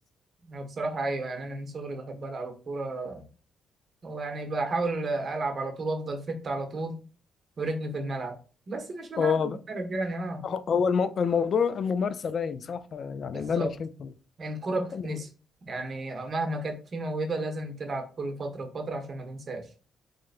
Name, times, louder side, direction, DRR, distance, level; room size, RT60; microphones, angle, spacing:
voice 1, 0.4-3.2 4.0-7.0 7.6-8.4 8.7-9.3 9.7-10.5 13.3-13.7 14.4-15.3 15.6-19.7, right 2 dB, 45° right, 1.0 m, -32 dB
voice 2, 9.2-9.6 10.4-14.1 14.9-15.1, left 6 dB, 55° left, 0.4 m, -27 dB
3.8 x 3.2 x 2.5 m
cardioid pair, 90°, 0 cm